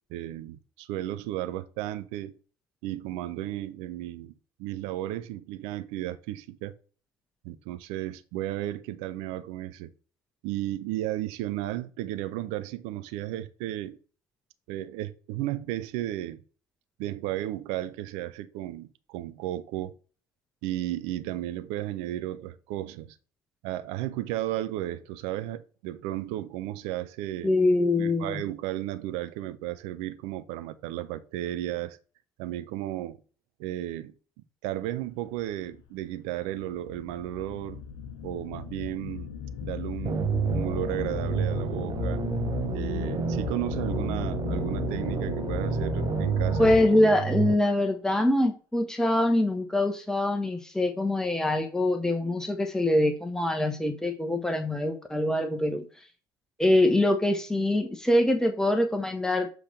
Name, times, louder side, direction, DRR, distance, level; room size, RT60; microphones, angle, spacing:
voice 1, 0.1-2.3 2.8-4.3 4.6-6.7 7.4-9.9 10.4-14.0 14.7-16.4 17.0-19.9 20.6-23.2 23.6-27.5 28.0-32.0 32.4-33.2 33.6-34.1 34.6-37.8 38.2-39.3 39.6-42.2 42.7-46.7, right 14 dB, 60° right, 0.7 m, -34 dB
voice 2, 27.4-28.4 46.6-55.8 56.6-59.5, left 1 dB, 5° left, 1.1 m, -24 dB
sound 1, 35.7-35.8 36.5-47.1, left 7 dB, 65° left, 0.8 m, -35 dB
sound 2, 40.0-47.6, right 7 dB, 35° right, 0.8 m, -30 dB
7.5 x 3.3 x 5.4 m
figure-of-eight pair, 55°, 12 cm